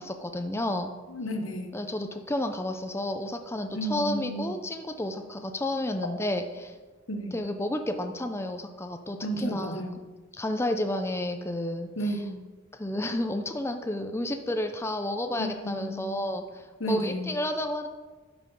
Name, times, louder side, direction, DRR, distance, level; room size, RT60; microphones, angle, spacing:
voice 1, 0.0-0.9 1.7-6.8 7.3-9.8 10.3-11.9 12.7-17.9, left 1 dB, 15° left, 6 dB, 0.5 m, -31 dB
voice 2, 1.1-1.8 3.7-4.6 7.1-7.3 9.2-10.0 12.0-12.4 15.4-16.3 16.8-17.3, right 1 dB, 75° left, 5 dB, 1.2 m, -32 dB
11.5 x 6.1 x 5.2 m, 1.3 s
head